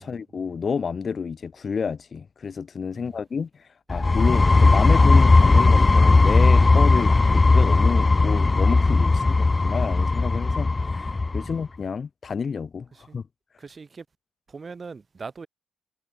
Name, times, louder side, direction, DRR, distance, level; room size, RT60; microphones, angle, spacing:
voice 1, 0.0-13.2, left 6 dB, 40° left, 1.4 m, -30 dB
sound 1, 3.9-11.5, left 3 dB, 25° left, 0.9 m, -17 dB
voice 2, 4.2-4.5 7.0-7.2 9.2-9.4 11.4-11.5 12.9-13.2 13.6-14.1 14.5-15.5, right 4 dB, 35° right, 7.4 m, -42 dB
cardioid pair, 90°, 0 cm